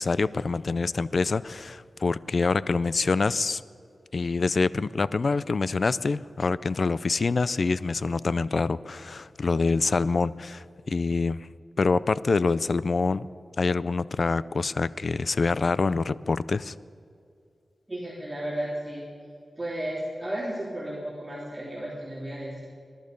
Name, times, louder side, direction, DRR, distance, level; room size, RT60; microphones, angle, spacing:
voice 1, 0.0-3.6 4.1-11.5 11.8-13.3 13.6-16.7, left 4 dB, 60° left, 18 dB, 0.4 m, -26 dB
voice 2, 17.9-19.0 19.6-22.7, right 1 dB, 20° right, -5 dB, 3.1 m, -33 dB
20.5 x 12.0 x 5.3 m, 2.3 s
wide cardioid pair, 80°, 0 cm